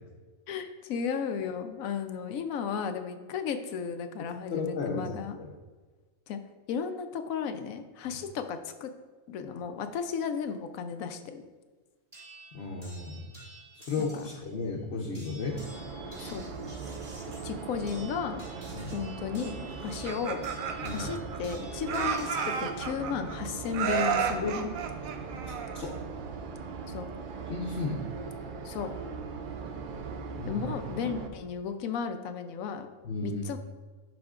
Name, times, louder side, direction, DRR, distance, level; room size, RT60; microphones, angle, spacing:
voice 1, 0.5-5.4 6.3-6.4 6.7-8.9 9.3-11.4 14.0-14.2 16.2-16.5 17.4-18.4 18.9-20.4 20.9-24.7 26.9-27.1 28.6-28.9 30.5-32.9 33.2-33.6, left 6 dB, 80° left, 8 dB, 1.0 m, -34 dB
voice 2, 4.5-5.1 5.4-5.5 12.5-13.3 13.8-15.6 18.7-18.9 20.8-21.1 24.4-24.6 25.5-25.9 27.5-28.1 30.4-30.7 33.0-33.4, left 4 dB, 55° left, -3 dB, 1.0 m, -34 dB
sound 1, 12.1-14.5 15.1-22.7 23.8-24.2, right 1 dB, 30° right, 2.2 m, -51 dB
sound 2, 15.5-31.3, right 5 dB, 65° right, 0.5 m, -40 dB
Laughter, 19.9-21.6 21.9-23.3 23.7-26.0, right 7 dB, 85° right, 1.0 m, -32 dB
11.0 x 4.3 x 2.4 m, 1.3 s
omnidirectional pair, 1.4 m